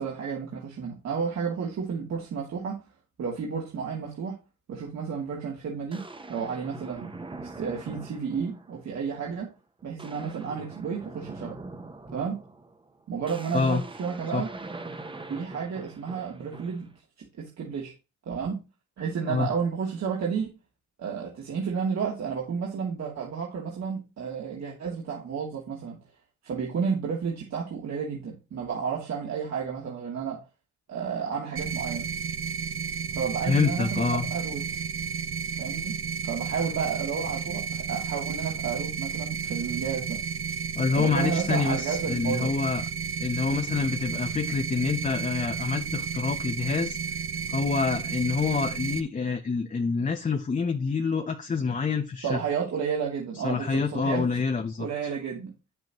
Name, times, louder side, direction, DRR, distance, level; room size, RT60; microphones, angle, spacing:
voice 1, 0.0-2.8 3.2-4.4 4.7-6.0 6.3-7.1 7.4-9.5 9.8-11.6 12.1-12.4 13.1-14.5 15.3-16.9 17.2-17.9 18.3-18.6 19.0-20.5 21.0-26.0 26.4-30.4 30.9-32.1 33.2-34.6 35.6-35.9 36.2-40.2 40.9-42.5 52.2-54.3 54.8-55.5, right 6 dB, 60° right, -4 dB, 2.7 m, -31 dB
sound 1, 5.1-5.2 5.9-8.8 9.2-9.5 9.8-16.9, right 2 dB, 15° right, 1.0 m, -43 dB
sound 2, 31.6-49.0, right 6 dB, 45° right, 0.8 m, -32 dB
voice 2, 33.4-34.3 40.8-42.8 43.2-47.0 47.5-52.4 53.4-54.9, left 5 dB, 25° left, 5 dB, 0.9 m, -27 dB
9.1 x 8.0 x 3.1 m, 0.29 s
cardioid pair, 90°, 30 cm